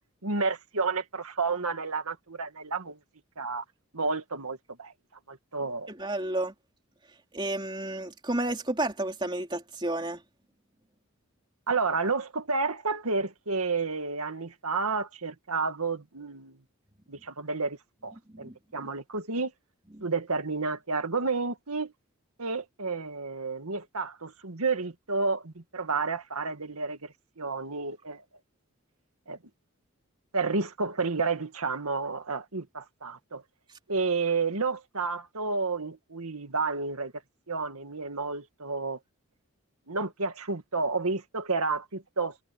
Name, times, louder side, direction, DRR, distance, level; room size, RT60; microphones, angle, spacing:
voice 1, 0.2-3.0 3.4-3.6 3.9-4.9 5.3-5.9 11.7-16.6 17.1-19.5 20.0-21.9 22.4-28.2 29.3-29.4 30.3-33.4 33.9-37.1 37.5-39.0 39.9-42.4, right 4 dB, 85° right, 2.0 m, -31 dB
voice 2, 5.9-6.5 7.3-10.2 18.4-18.5 20.0-20.1, right 2 dB, 20° right, 3.3 m, -31 dB
head